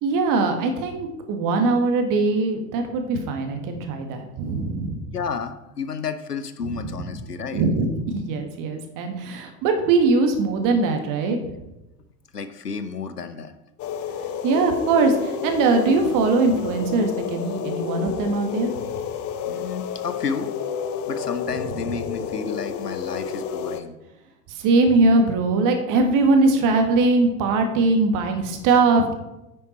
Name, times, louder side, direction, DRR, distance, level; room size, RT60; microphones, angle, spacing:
voice 1, 0.0-5.0 6.6-6.7 7.0-7.1 7.5-11.5 14.4-18.8 24.5-29.1, right 3 dB, 45° right, 5 dB, 1.9 m, -21 dB
voice 2, 5.1-7.6 12.3-13.5 19.5-20.5 21.1-24.0, left 5 dB, 90° left, 11 dB, 0.8 m, -31 dB
sound 1, 13.8-23.8, left 7 dB, 30° left, 0.8 m, -30 dB
10.0 x 6.5 x 4.5 m, 0.93 s
figure-of-eight pair, 80°, 46 cm